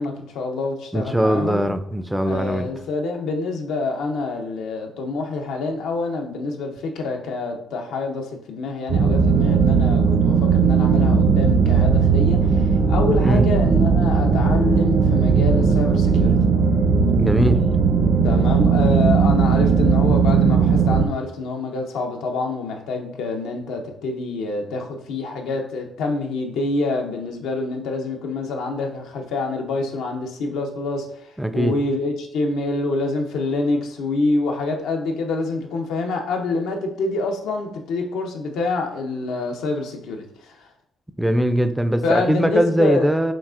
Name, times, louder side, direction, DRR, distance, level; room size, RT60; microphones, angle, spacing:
voice 1, 0.0-1.7 2.2-16.4 18.2-40.6 42.0-43.1, left 3 dB, 90° left, 2 dB, 0.6 m, -26 dB
voice 2, 0.9-2.7 13.2-13.4 17.2-17.7 31.4-31.7 41.2-43.3, right 1 dB, 5° right, 9 dB, 0.3 m, -20 dB
sound 1, 8.9-21.1, right 5 dB, 65° right, 0.5 m, -17 dB
5.9 x 2.4 x 2.4 m, 0.71 s
cardioid pair, 90°, 0 cm